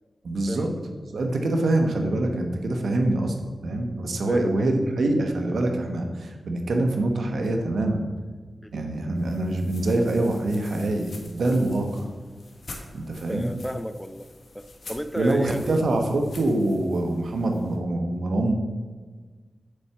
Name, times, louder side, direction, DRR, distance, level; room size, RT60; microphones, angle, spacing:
voice 1, 0.2-0.7 1.1-8.0 8.7-12.1 12.9-13.5 15.1-18.5, right 2 dB, 80° right, 4 dB, 1.1 m, -25 dB
voice 2, 4.3-4.7 8.6-8.7 13.3-14.3 14.5-15.8, equal, 5° left, 11 dB, 0.4 m, -33 dB
sound 1, 9.2-17.8, left 2 dB, 70° left, 1.4 m, -46 dB
8.1 x 4.4 x 6.8 m, 1.4 s
cardioid pair, 65°, 0 cm